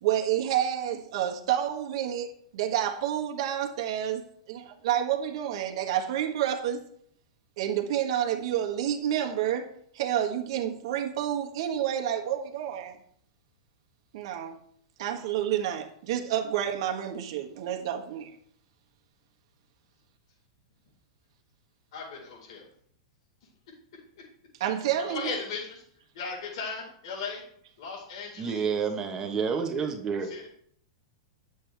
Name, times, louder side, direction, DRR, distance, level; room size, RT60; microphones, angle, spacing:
voice 1, 0.0-2.3 2.5-6.8 7.6-13.0 14.1-14.5 15.0-18.3 24.6-25.4, right 10 dB, 60° right, 1.5 m, -29 dB
voice 2, 21.9-22.6 25.1-25.8 26.1-27.4 27.8-28.7 30.2-30.5, left 4 dB, 65° left, 4.6 m, -37 dB
voice 3, 28.4-30.3, right 6 dB, 20° right, 1.2 m, -29 dB
10.0 x 7.9 x 3.5 m
supercardioid pair, 150°, 3 cm